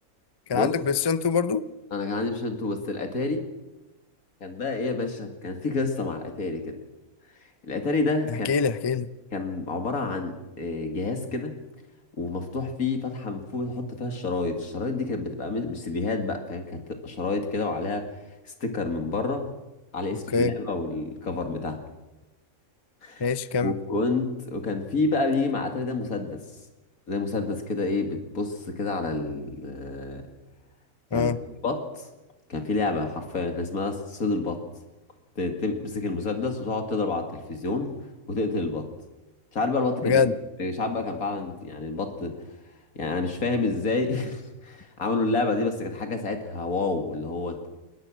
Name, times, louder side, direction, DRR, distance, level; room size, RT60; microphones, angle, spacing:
voice 1, 0.5-1.6 8.4-9.1 20.3-20.5 23.2-23.7 31.1-31.4 40.0-40.3, left 5 dB, 35° left, 14 dB, 0.4 m, -24 dB
voice 2, 1.9-3.4 4.4-6.8 7.6-8.5 9.3-11.5 12.2-18.0 18.6-19.5 19.9-21.8 23.0-23.3 23.6-26.4 27.1-30.3 31.1-31.3 31.6-32.1 32.5-34.6 35.4-38.0 38.3-38.9 39.5-40.3 40.6-42.4 42.9-47.8, left 3 dB, 75° left, 5 dB, 2.8 m, -28 dB
22.0 x 19.5 x 6.3 m, 1.0 s
omnidirectional pair, 1.5 m